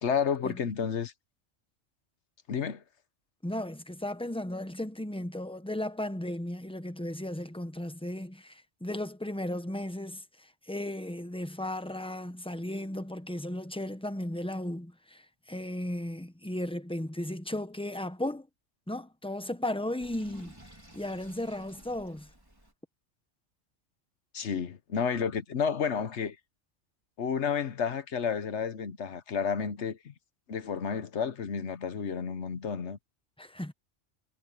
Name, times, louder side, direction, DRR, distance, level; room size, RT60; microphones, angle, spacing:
voice 1, 0.0-1.1 2.5-2.8 24.3-26.4 27.2-30.1 30.5-33.0, left 6 dB, 65° left, 1.2 m, -31 dB
voice 2, 3.4-18.5 18.9-20.5 20.9-22.3 33.4-33.7, left 1 dB, 5° left, 0.8 m, -35 dB
Sink (filling or washing), 20.0-22.7, right 1 dB, 15° right, 4.1 m, -54 dB
omnidirectional pair, 1.3 m